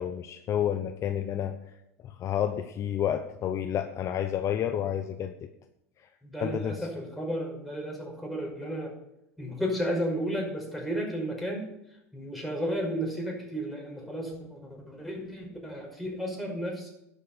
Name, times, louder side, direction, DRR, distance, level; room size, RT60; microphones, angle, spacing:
voice 1, 0.0-1.6 2.0-5.3 6.0-6.1 6.4-6.9, left 10 dB, 40° left, 8 dB, 0.9 m, -30 dB
voice 2, 6.2-8.9 9.4-11.7 12.1-16.9, equal, ahead, -2 dB, 5.7 m, -33 dB
11.0 x 8.6 x 6.9 m, 0.83 s
hypercardioid pair, 85°, 8 cm